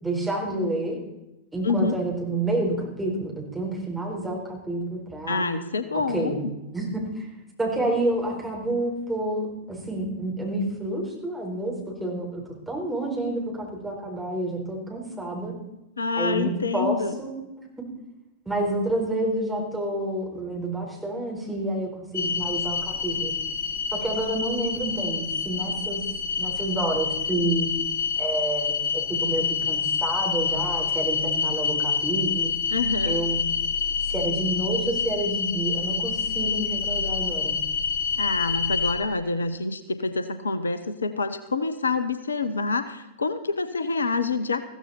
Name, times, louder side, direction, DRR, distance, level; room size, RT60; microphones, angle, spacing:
voice 1, 0.0-1.0 1.5-5.5 6.1-6.4 6.7-7.3 7.6-11.7 12.0-15.5 16.2-17.3 17.6-17.7 18.5-23.3 23.9-26.0 26.4-27.7 28.2-32.5 33.0-33.4 34.0-37.6, right 2 dB, 10° right, -2 dB, 4.5 m, -29 dB
voice 2, 1.6-2.0 5.3-6.5 16.0-17.2 32.7-33.2 38.2-44.6, left 4 dB, 75° left, 12 dB, 0.8 m, -27 dB
sound 1, 22.1-39.0, left 5 dB, 55° left, 2.4 m, -27 dB
15.0 x 14.0 x 4.3 m, 0.96 s
figure-of-eight pair, 90°, 0 cm